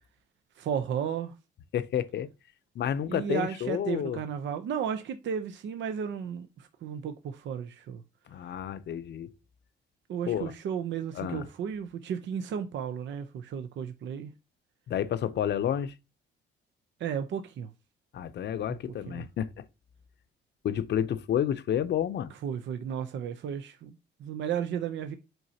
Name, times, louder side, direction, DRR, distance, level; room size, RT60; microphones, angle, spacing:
voice 1, 0.6-1.3 3.1-8.0 10.1-14.3 17.0-17.7 18.7-18.8 19.1-19.2 22.4-25.1, right 8 dB, 65° right, 0.7 m, -34 dB
voice 2, 1.7-2.3 2.7-4.2 8.3-9.3 10.3-10.5 11.1-11.5 14.9-15.9 18.1-19.7 20.6-22.3, left 10 dB, 60° left, 0.7 m, -30 dB
7.9 x 4.5 x 2.8 m
cardioid pair, 90°, 20 cm